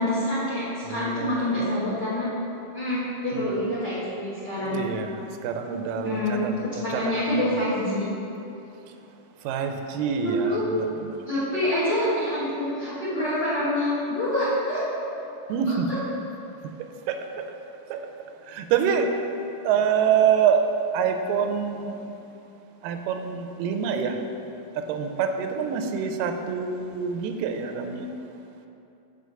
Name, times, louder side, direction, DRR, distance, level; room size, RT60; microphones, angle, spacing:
voice 1, 0.0-2.3 2.7-4.8 6.0-6.4 6.8-8.1 10.2-10.6 11.3-14.8 15.7-16.0, left 1 dB, 55° left, -9 dB, 1.3 m, -26 dB
voice 2, 0.8-1.4 3.3-3.7 4.7-5.1 5.4-7.2 9.5-11.2 15.5-15.9 17.1-17.5 17.9-18.0 18.5-19.1 19.6-20.6 20.9-21.9 22.8-24.2 24.9-28.1, right 7 dB, 85° right, 5 dB, 2.2 m, -26 dB
6.3 x 4.9 x 6.7 m, 2.8 s
omnidirectional pair, 3.9 m